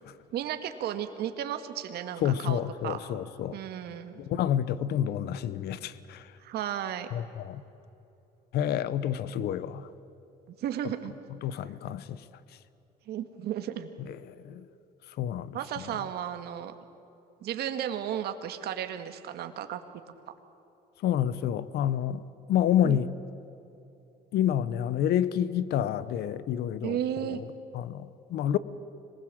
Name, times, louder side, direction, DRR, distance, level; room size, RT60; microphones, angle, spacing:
voice 1, 0.3-3.0 3.5-4.2 6.4-7.1 10.5-11.1 13.1-13.9 15.5-16.7 17.4-19.8 22.8-23.0 26.8-27.4, right 10 dB, 70° right, 1.9 m, -34 dB
voice 2, 2.2-3.6 4.2-6.2 7.1-7.6 8.5-9.9 11.4-12.2 14.4-14.6 15.2-15.6 21.0-22.2 22.5-23.1 24.3-27.0 27.7-28.6, left 10 dB, 70° left, 1.0 m, -28 dB
25.5 x 20.0 x 7.7 m
cardioid pair, 110°, 17 cm